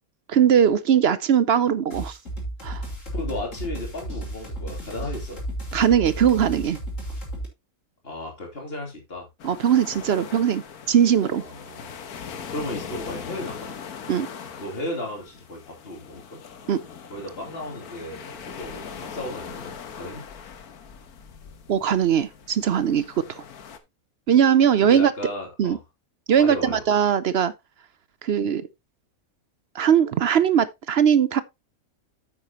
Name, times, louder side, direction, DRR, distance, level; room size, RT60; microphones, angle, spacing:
voice 1, 0.3-2.2 2.6-2.8 5.7-6.8 9.4-11.4 14.1-14.3 16.7-16.8 21.7-23.0 23.3-23.4 24.3-25.1 25.6-25.8 26.3-27.5 28.2-28.7 29.7-31.4, right 8 dB, 60° right, 0.7 m, -20 dB
sound 1, 1.9-7.5, right 1 dB, 60° left, 4.1 m, -33 dB
voice 2, 3.1-5.4 8.0-9.3 11.4-11.9 12.5-13.8 14.6-16.4 17.1-20.2 24.8-25.8 26.3-26.8, left 1 dB, 40° left, 3.4 m, -35 dB
sound 2, 9.4-23.8, left 7 dB, 85° left, 1.6 m, -40 dB
9.0 x 8.5 x 3.0 m
omnidirectional pair, 1.5 m